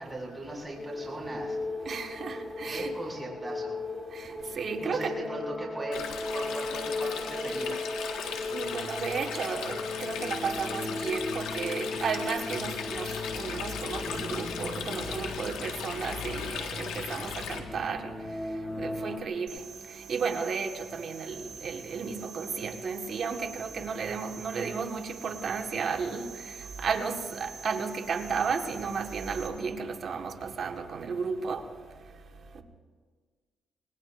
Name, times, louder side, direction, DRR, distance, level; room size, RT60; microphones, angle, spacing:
voice 1, 0.0-1.6 2.7-3.8 4.8-6.0 6.3-7.8, right 2 dB, 15° right, -3 dB, 6.3 m, -39 dB
sound 1, 0.8-19.2, left 2 dB, 15° left, 1.5 m, -37 dB
voice 2, 1.8-2.9 4.1-4.3 4.5-5.2 8.2-18.1 18.8-19.6 20.1-26.3 26.8-31.6, right 5 dB, 55° right, 4 dB, 1.7 m, -33 dB
Stream, 5.9-17.6, left 7 dB, 90° left, 1.7 m, -38 dB
sound 2, 19.5-29.5, right 6 dB, 85° right, 5.7 m, -46 dB
26.5 x 20.0 x 2.6 m, 1.5 s
cardioid pair, 90°, 0 cm